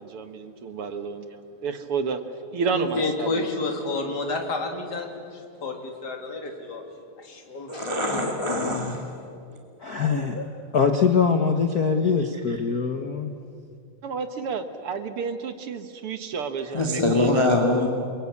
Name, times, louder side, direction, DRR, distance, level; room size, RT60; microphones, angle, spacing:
voice 1, 0.0-2.2 2.5-3.5 14.0-17.5, right 5 dB, 60° right, 9 dB, 1.9 m, -30 dB
voice 2, 2.7-6.9 7.2-7.9, left 3 dB, 35° left, 3 dB, 3.3 m, -30 dB
voice 3, 7.7-9.0 12.5-12.6 16.7-17.9, left 2 dB, 10° left, 1 dB, 1.9 m, -23 dB
voice 4, 9.8-10.5 10.7-13.3, left 5 dB, 55° left, 5 dB, 1.1 m, -23 dB
29.5 x 23.0 x 8.5 m, 2.4 s
omnidirectional pair, 3.3 m